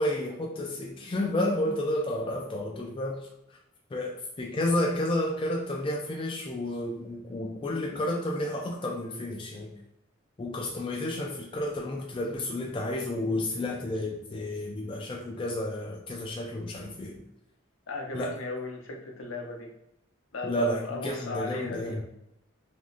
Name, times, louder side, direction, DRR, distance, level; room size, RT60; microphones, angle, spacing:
voice 1, 0.0-3.3 3.9-9.7 10.4-17.2 18.1-18.4 20.4-22.0, left 1 dB, 25° left, 0 dB, 0.3 m, -31 dB
voice 2, 17.9-19.7 20.3-22.0, left 2 dB, 80° left, 2 dB, 0.6 m, -36 dB
3.4 x 2.4 x 2.5 m, 0.81 s
head